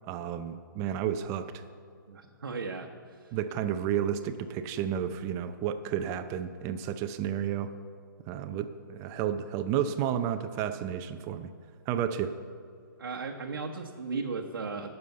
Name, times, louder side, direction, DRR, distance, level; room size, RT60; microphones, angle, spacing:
voice 1, 0.1-1.6 3.3-7.7 8.3-11.5 11.9-12.3, right 9 dB, 25° right, 10 dB, 0.5 m, -31 dB
voice 2, 2.1-2.9 3.2-3.3 13.0-15.0, right 4 dB, 85° right, 1 dB, 1.0 m, -36 dB
10.5 x 6.8 x 7.9 m, 2.2 s
hypercardioid pair, 140°, 11 cm